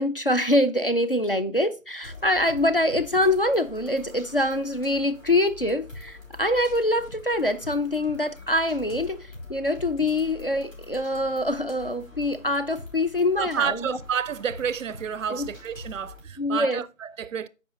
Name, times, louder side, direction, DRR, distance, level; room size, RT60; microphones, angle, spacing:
voice 1, 0.0-14.0 15.3-15.5 16.4-16.8, left 1 dB, 45° left, 0.4 m, -24 dB
sound 1, 2.0-16.2, left 2 dB, 70° left, 3.3 m, -45 dB
voice 2, 13.4-17.5, right 8 dB, 70° right, 0.5 m, -30 dB
8.2 x 4.9 x 3.6 m
figure-of-eight pair, 155°, 41 cm